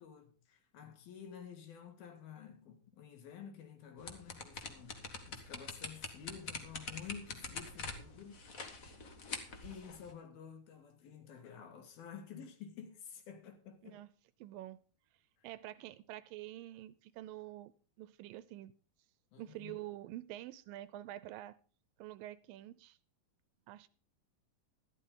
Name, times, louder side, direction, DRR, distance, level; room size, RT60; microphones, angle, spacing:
voice 1, 0.0-8.7 9.6-14.0 15.4-15.5 19.3-19.7, left 7 dB, 90° left, 3.8 m, -51 dB
sound 1, 4.0-10.1, left 3 dB, 65° left, 0.8 m, -45 dB
voice 2, 14.4-14.8 15.4-17.7 18.0-18.7 19.4-21.6 22.0-23.0 23.7-23.9, right 14 dB, 80° right, 2.3 m, -47 dB
13.0 x 12.0 x 3.8 m
omnidirectional pair, 4.2 m